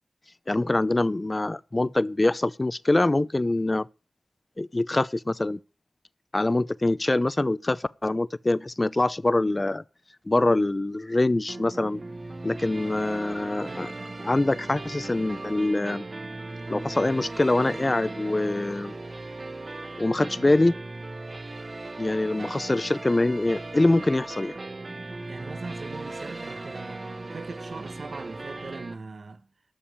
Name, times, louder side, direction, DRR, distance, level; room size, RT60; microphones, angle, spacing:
voice 1, 0.5-3.9 4.6-5.6 6.3-9.8 10.3-12.0 12.4-13.9 14.2-16.0 16.7-18.9 20.0-20.7 22.0-24.5, left 2 dB, 35° left, 0.7 m, -24 dB
sound 1, 11.5-28.9, right 2 dB, 50° right, 1.6 m, -38 dB
voice 2, 25.0-27.0 27.3-29.5, right 4 dB, 75° right, 1.2 m, -41 dB
13.0 x 5.1 x 8.6 m
cardioid pair, 55°, 0 cm